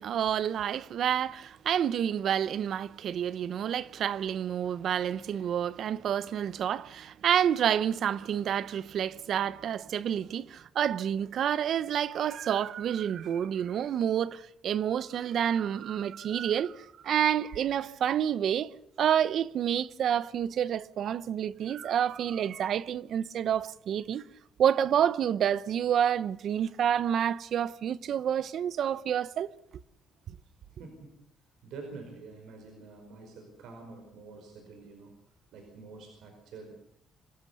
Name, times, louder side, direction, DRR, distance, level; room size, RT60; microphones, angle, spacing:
voice 1, 0.0-18.7 19.0-24.2 24.6-29.5, right 9 dB, 65° right, 0.8 m, -29 dB
voice 2, 30.8-31.2 31.6-35.1 35.5-36.7, right 4 dB, 85° right, 5.2 m, -47 dB
26.0 x 16.0 x 6.9 m
cardioid pair, 90°, 0 cm